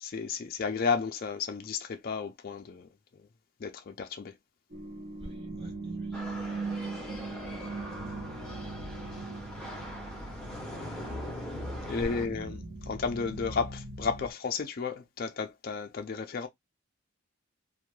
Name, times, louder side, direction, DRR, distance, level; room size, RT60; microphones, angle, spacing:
voice 1, 0.0-2.9 3.6-4.3 11.9-12.6 12.9-16.5, left 5 dB, 45° left, 0.4 m, -33 dB
sound 1, 4.7-14.3, right 2 dB, 40° right, 0.6 m, -39 dB
voice 2, 5.2-6.3 6.6-7.0 11.9-12.6, equal, 25° right, 1.0 m, -55 dB
sound 2, 6.1-12.3, equal, 5° left, 0.6 m, -42 dB
2.6 x 2.2 x 3.0 m
head